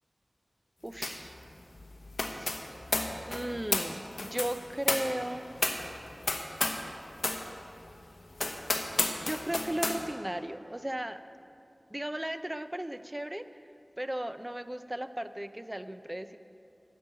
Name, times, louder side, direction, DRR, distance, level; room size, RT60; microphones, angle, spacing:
voice 1, 0.8-1.3 2.3-2.5 3.3-5.5 9.2-11.2 11.9-13.4 14.0-16.4, right 1 dB, 20° right, 11 dB, 0.5 m, -36 dB
sound 1, 1.0-1.3 1.5-6.9 7.2-7.5 7.9-8.0 8.4-10.0, left 2 dB, 70° left, 1.0 m, -32 dB
10.5 x 7.2 x 8.9 m, 2.8 s
wide cardioid pair, 65°, 0 cm